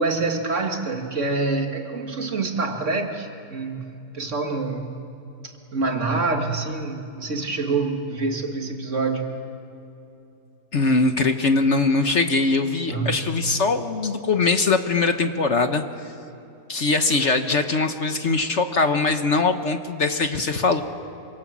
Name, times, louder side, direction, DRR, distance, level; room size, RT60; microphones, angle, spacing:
voice 1, 0.0-5.0 5.4-9.3 12.9-13.2, right 3 dB, 50° right, 4 dB, 2.1 m, -26 dB
voice 2, 10.7-16.1 16.7-20.8, left 3 dB, 50° left, 7 dB, 1.3 m, -21 dB
26.5 x 25.5 x 7.4 m, 2.9 s
omnidirectional pair, 1.7 m